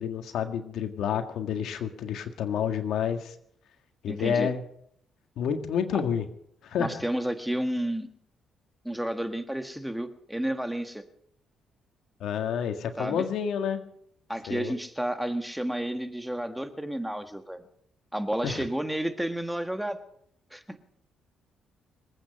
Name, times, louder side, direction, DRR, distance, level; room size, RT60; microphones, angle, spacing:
voice 1, 0.0-3.3 4.0-4.6 5.4-6.3 6.6-7.0 12.2-13.8 14.5-14.7 18.4-18.6, left 8 dB, 75° left, 7 dB, 1.8 m, -29 dB
voice 2, 4.1-4.5 6.8-8.1 8.9-11.0 13.0-13.3 14.3-17.7 18.1-20.0 20.5-20.6, right 1 dB, 5° right, 8 dB, 1.6 m, -31 dB
26.5 x 9.0 x 5.4 m, 0.69 s
cardioid pair, 90°, 0 cm